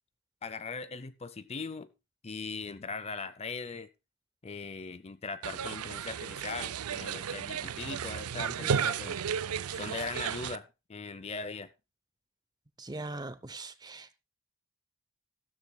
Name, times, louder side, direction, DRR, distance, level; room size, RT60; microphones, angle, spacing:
voice 1, 0.4-1.9 2.2-3.9 4.4-9.2 9.7-11.7, left 4 dB, 30° left, 0.5 m, -40 dB
sound 1, 5.4-10.6, right 7 dB, 90° right, 0.5 m, -34 dB
voice 2, 8.6-8.9 12.8-14.1, right 2 dB, 20° right, 0.6 m, -41 dB
15.0 x 12.5 x 2.2 m
head